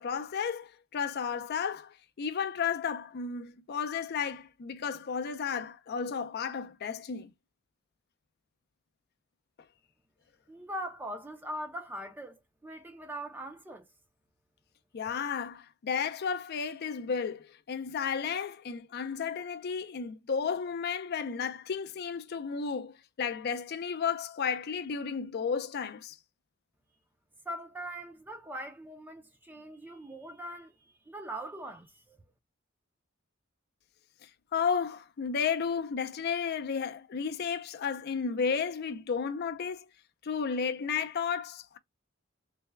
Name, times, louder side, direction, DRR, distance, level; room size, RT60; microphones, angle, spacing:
voice 1, 0.0-7.3 14.9-26.2 34.5-39.9 40.2-41.8, left 6 dB, 55° left, 0.4 m, -33 dB
voice 2, 10.5-13.9 27.5-32.2, right 1 dB, 10° right, 0.4 m, -41 dB
3.3 x 2.1 x 3.2 m
head